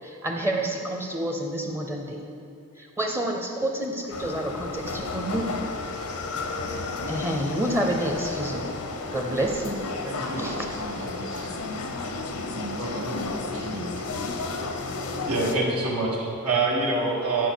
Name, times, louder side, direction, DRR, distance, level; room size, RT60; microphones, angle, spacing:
voice 1, 0.0-2.2 2.8-5.5 7.1-8.7 9.1-9.8 10.4-10.5, right 1 dB, 10° right, 2 dB, 0.6 m, -28 dB
sound 1, 4.1-15.6, left 3 dB, 80° left, 0.7 m, -32 dB
voice 2, 10.0-11.7 12.5-14.1, right 1 dB, 60° right, -4 dB, 1.4 m, -36 dB
voice 3, 15.2-17.5, right 3 dB, 90° right, -5 dB, 1.5 m, -25 dB
9.2 x 4.7 x 6.0 m, 2.7 s
head